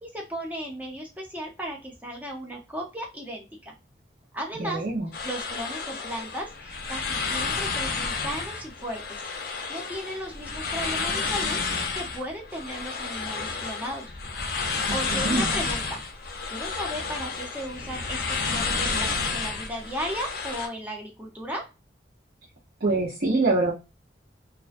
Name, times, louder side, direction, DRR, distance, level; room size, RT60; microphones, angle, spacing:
voice 1, 0.0-3.7 4.3-4.8 5.2-14.1 14.7-16.0 16.5-21.6, equal, 10° right, 0 dB, 0.6 m, -36 dB
voice 2, 4.6-5.1 15.1-15.5 22.8-23.7, right 2 dB, 55° right, -7 dB, 0.7 m, -24 dB
sound 1, 5.1-20.7, left 4 dB, 55° left, 0.5 m, -31 dB
2.4 x 2.1 x 2.4 m, 0.29 s
head